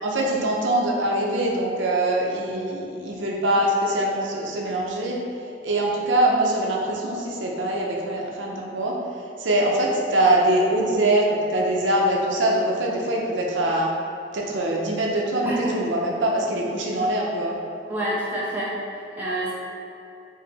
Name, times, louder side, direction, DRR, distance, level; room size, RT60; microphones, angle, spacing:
voice 1, 0.0-5.2 5.6-8.9 9.4-13.9 14.3-17.5, right 1 dB, 80° right, -2 dB, 0.6 m, -23 dB
voice 2, 15.4-15.8 17.9-19.5, right 1 dB, 10° right, -8 dB, 0.8 m, -28 dB
4.8 x 2.6 x 4.0 m, 2.8 s
head